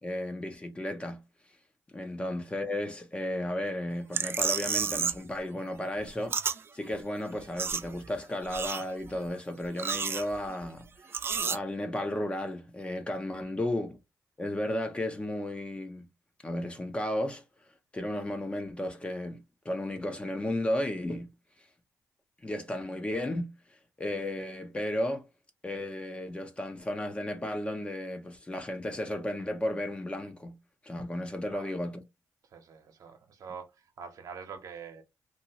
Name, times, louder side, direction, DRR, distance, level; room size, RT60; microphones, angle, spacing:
voice 1, 0.0-1.2 1.9-6.4 6.7-11.2 11.5-14.0 14.4-16.1 16.4-17.4 17.9-21.3 22.4-23.5 24.0-25.3 25.6-30.6 30.8-32.0, left 1 dB, 20° left, 0.8 m, -34 dB
sound 1, 4.1-5.3 5.6-6.6 6.9-7.0 7.3-8.2 8.4-9.2 9.6-10.7 11.1-11.6, right 6 dB, 40° right, 0.3 m, -31 dB
voice 2, 32.4-35.0, right 6 dB, 65° right, 0.9 m, -45 dB
2.9 x 2.7 x 2.8 m
cardioid pair, 105°, 6 cm